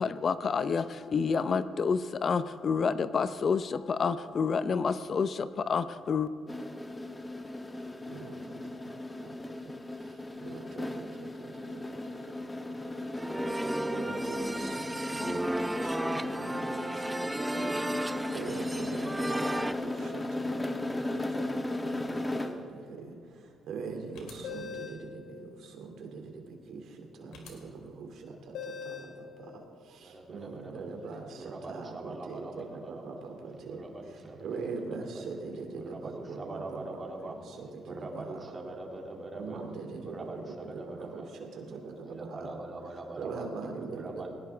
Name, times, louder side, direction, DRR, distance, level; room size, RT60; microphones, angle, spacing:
voice 1, 0.0-6.3, left 5 dB, 50° left, 13 dB, 0.6 m, -29 dB
sound 1, 6.5-22.7, left 1 dB, 15° left, 1.2 m, -36 dB
voice 2, 7.7-8.9 9.2-12.3 12.7-13.1 13.4-38.5 39.3-42.6 43.2-44.3, right 4 dB, 75° right, 3 dB, 2.6 m, -43 dB
sound 2, 13.1-19.7, right 1 dB, 10° right, 0.5 m, -34 dB
sound 3, 24.2-25.0 27.3-27.5 28.5-29.2, left 7 dB, 90° left, 2.5 m, -41 dB
voice 3, 30.0-30.9 31.4-33.2 33.7-35.3 35.8-37.6 37.9-39.6 40.0-41.3 42.1-43.5 43.9-44.3, right 2 dB, 35° right, 1 dB, 2.6 m, -43 dB
20.0 x 17.5 x 3.5 m, 2.5 s
cardioid pair, 90°, 0 cm